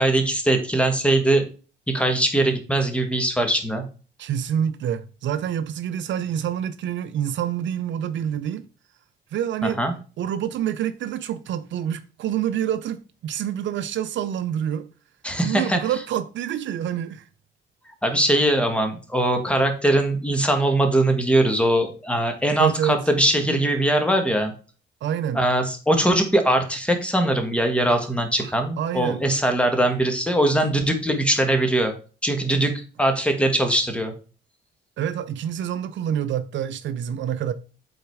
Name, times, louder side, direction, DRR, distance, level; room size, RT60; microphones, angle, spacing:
voice 1, 0.0-1.5 1.9-3.8 9.6-9.9 15.2-15.8 18.0-24.5 25.3-31.9 32.2-34.1, right 1 dB, 5° left, 1.6 m, -21 dB
voice 2, 4.2-8.6 9.3-9.8 10.2-14.9 15.4-17.2 22.5-23.0 25.0-25.4 28.4-29.2 35.0-37.5, right 9 dB, 70° right, 0.6 m, -27 dB
8.0 x 4.0 x 4.7 m
cardioid pair, 90°, 20 cm